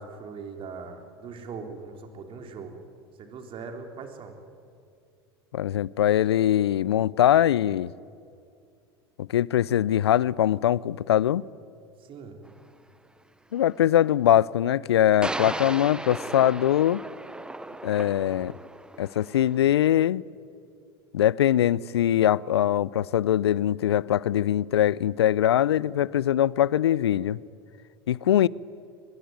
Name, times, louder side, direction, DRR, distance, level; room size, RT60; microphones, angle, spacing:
voice 1, 0.0-2.8 3.2-4.3 12.0-12.4, right 5 dB, 40° right, 3.7 m, -40 dB
voice 2, 5.5-7.9 9.2-11.4 13.5-17.0 17.8-18.5 19.0-20.2 21.1-27.4 28.1-28.5, left 11 dB, 80° left, 0.5 m, -22 dB
sound 1, 12.5-12.6 15.2-19.6, right 2 dB, 5° right, 0.8 m, -36 dB
24.0 x 21.5 x 9.5 m
hypercardioid pair, 80°, 13 cm